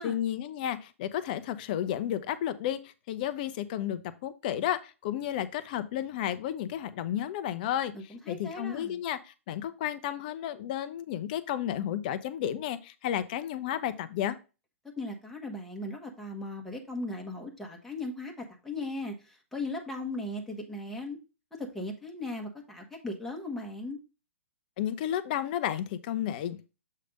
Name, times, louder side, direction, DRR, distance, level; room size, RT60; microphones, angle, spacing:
voice 1, 0.0-9.2 9.5-14.4 24.8-26.7, left 11 dB, 40° left, 14 dB, 0.6 m, -32 dB
voice 2, 7.9-9.0 15.0-21.2 21.6-24.0, left 2 dB, 5° left, 0 dB, 1.4 m, -37 dB
7.4 x 3.3 x 5.1 m, 0.30 s
figure-of-eight pair, 115°, 7 cm